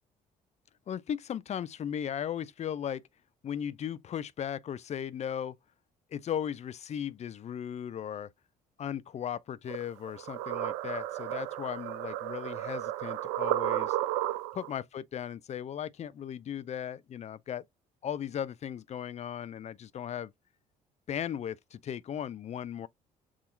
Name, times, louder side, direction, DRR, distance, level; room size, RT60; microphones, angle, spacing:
voice 1, 0.9-3.1 3.4-5.6 6.1-8.3 8.8-14.0 14.5-17.6 18.0-20.3 21.1-22.9, left 9 dB, 35° left, 0.5 m, -37 dB
sound 1, 9.7-14.7, right 15 dB, 65° right, 0.4 m, -33 dB
7.2 x 2.8 x 2.3 m
figure-of-eight pair, 50°, 20 cm